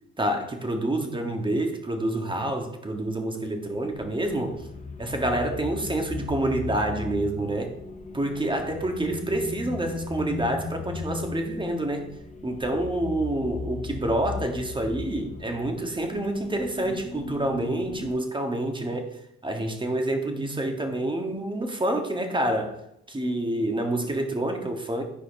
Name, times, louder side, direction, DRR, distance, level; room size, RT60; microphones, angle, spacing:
voice 1, 0.2-4.6 5.0-7.7 8.1-12.1 12.4-22.8 23.1-25.0, right 1 dB, 15° right, 1.8 m, -28 dB
sound 1, 3.9-18.1, left 4 dB, 25° left, 0.9 m, -37 dB
12.0 x 5.0 x 4.9 m
cardioid pair, 90°, 30 cm